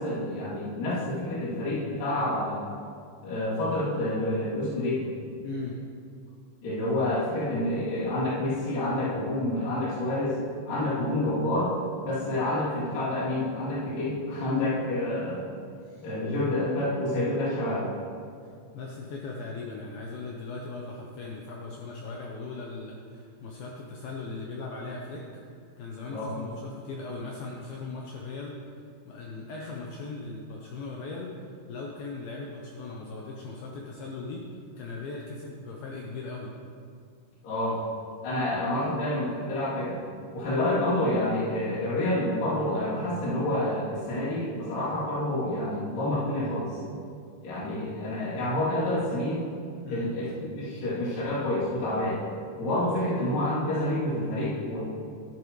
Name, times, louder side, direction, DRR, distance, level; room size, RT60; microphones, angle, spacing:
voice 1, 0.0-2.7 3.2-5.1 6.6-10.4 10.7-11.7 12.0-15.5 16.0-17.9 26.1-26.4 37.4-37.8 38.2-40.0 40.3-46.8 47.4-49.5 49.9-52.2 52.6-54.8, left 1 dB, 50° left, -10 dB, 4.2 m, -28 dB
voice 2, 5.4-5.8 15.7-16.1 18.4-25.2 25.8-28.6 29.1-36.5 49.8-50.1, left 3 dB, 85° left, -2 dB, 2.1 m, -39 dB
12.0 x 11.5 x 3.2 m, 2.3 s
omnidirectional pair, 5.5 m